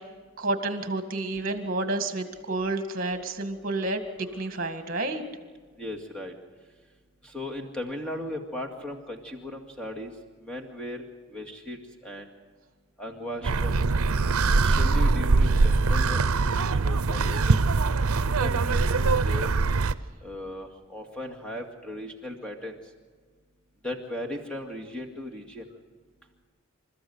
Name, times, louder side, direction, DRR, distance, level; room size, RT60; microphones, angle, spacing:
voice 1, 0.4-5.2, right 2 dB, 40° right, 8 dB, 2.0 m, -30 dB
voice 2, 5.8-6.3 7.2-10.1 10.4-11.0 11.3-12.3 13.0-13.8 14.5-17.6 18.2-19.5 20.2-22.8 23.8-25.7, left 1 dB, 5° left, 1 dB, 2.2 m, -37 dB
sound 1, 13.4-19.9, right 3 dB, 85° right, 0.7 m, -22 dB
27.5 x 14.0 x 8.0 m, 1.5 s
head